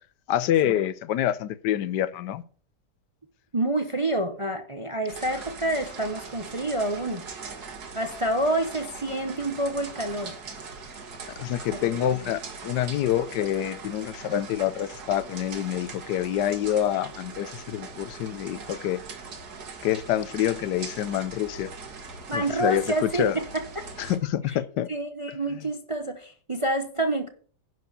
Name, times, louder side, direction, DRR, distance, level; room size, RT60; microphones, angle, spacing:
voice 1, 0.3-2.4 11.4-19.0 19.8-21.7 22.3-23.4 24.0-24.9, left 11 dB, 80° left, 1.3 m, -27 dB
voice 2, 3.5-7.2 7.9-10.3 11.7-12.3 22.3-23.8 24.5-24.6 24.9-27.3, right 1 dB, 30° right, 0.6 m, -28 dB
sound 1, 5.1-24.2, right 4 dB, 70° right, 2.1 m, -41 dB
11.0 x 4.8 x 6.7 m
omnidirectional pair, 1.8 m